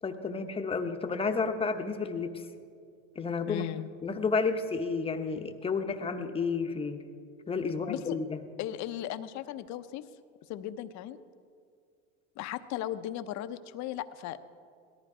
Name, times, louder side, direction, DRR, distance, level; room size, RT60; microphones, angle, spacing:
voice 1, 0.0-2.5 3.2-3.6 4.0-7.0 7.5-8.5, left 4 dB, 15° left, 6 dB, 0.9 m, -31 dB
voice 2, 3.5-3.9 7.9-8.2 8.6-10.0 10.5-11.2 12.4-14.4, left 12 dB, 45° left, 11 dB, 0.8 m, -36 dB
18.0 x 13.5 x 4.9 m, 2.2 s
supercardioid pair, 125°, 38 cm